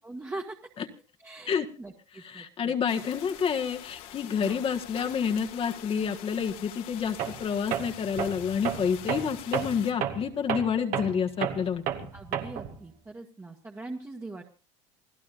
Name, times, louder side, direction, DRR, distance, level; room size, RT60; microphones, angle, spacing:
voice 1, 0.0-0.7 1.2-2.7 4.4-4.6 12.1-14.4, right 2 dB, 15° right, 0 dB, 1.8 m, -41 dB
voice 2, 2.2-12.1, left 7 dB, 40° left, 5 dB, 1.6 m, -29 dB
sound 1, 2.9-9.9, left 12 dB, 70° left, 2.3 m, -45 dB
Tools, 7.2-7.4 7.7-12.8, right 9 dB, 65° right, 2.4 m, -32 dB
27.5 x 16.0 x 2.6 m, 0.36 s
supercardioid pair, 100°, 15 cm